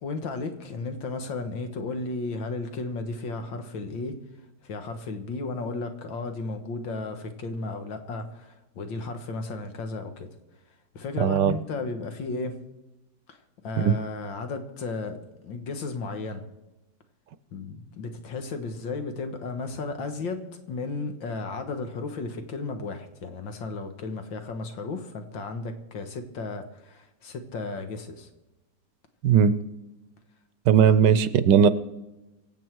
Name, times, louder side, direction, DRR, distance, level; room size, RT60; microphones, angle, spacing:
voice 1, 0.0-4.2 4.6-10.3 10.9-12.6 13.3-16.4 17.5-28.3 30.9-31.0, left 3 dB, 85° left, 7 dB, 2.2 m, -34 dB
voice 2, 11.2-11.6 13.8-14.0 29.2-29.6 30.7-31.7, right 7 dB, 70° right, 14 dB, 1.3 m, -18 dB
24.5 x 8.2 x 4.7 m, 1.0 s
omnidirectional pair, 2.0 m